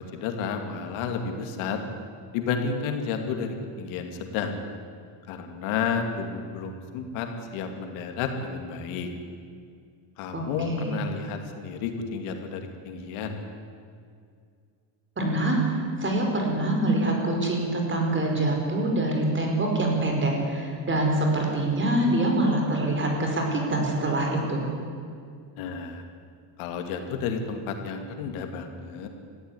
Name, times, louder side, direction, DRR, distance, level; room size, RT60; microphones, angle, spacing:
voice 1, 0.1-1.8 2.3-4.6 5.3-9.1 10.2-13.4 25.6-26.0 26.6-29.1, left 5 dB, 80° left, 5 dB, 2.6 m, -31 dB
voice 2, 10.3-11.0 15.2-15.6 16.0-24.7, right 1 dB, 25° right, 1 dB, 4.9 m, -25 dB
19.0 x 15.0 x 9.9 m, 2.2 s
cardioid pair, 135°, 48 cm